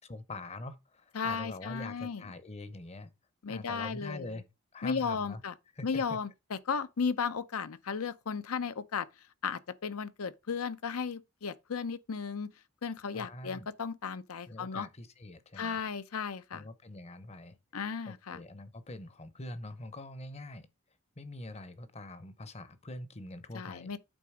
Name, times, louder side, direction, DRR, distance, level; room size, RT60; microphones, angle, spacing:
voice 1, 0.1-3.1 3.5-4.4 4.7-5.4 5.8-6.2 13.1-13.7 14.5-15.8 16.5-17.6 18.1-20.7 21.2-24.0, left 2 dB, 30° left, 0.7 m, -44 dB
voice 2, 1.1-2.2 3.4-4.3 4.8-5.5 5.8-9.1 9.4-12.5 12.8-14.9 15.6-16.6 17.7-18.4 23.5-24.0, left 5 dB, 80° left, 0.6 m, -35 dB
8.9 x 3.9 x 4.9 m
head